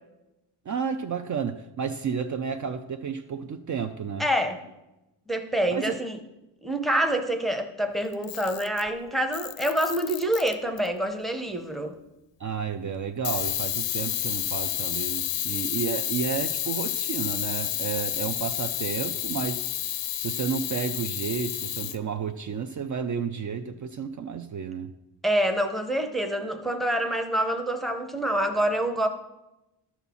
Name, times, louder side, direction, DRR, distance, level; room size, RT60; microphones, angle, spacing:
voice 1, 0.7-4.2 5.7-6.0 12.4-19.7 20.2-24.9, right 6 dB, 45° right, 8 dB, 0.4 m, -31 dB
voice 2, 4.2-4.7 5.3-6.2 6.6-12.0 25.2-29.1, right 1 dB, ahead, 6 dB, 0.6 m, -26 dB
Camera, 8.1-8.9 9.3-10.9 13.2-22.0, left 11 dB, 75° left, 0.7 m, -30 dB
12.0 x 4.3 x 7.0 m, 0.97 s
wide cardioid pair, 165°, 44 cm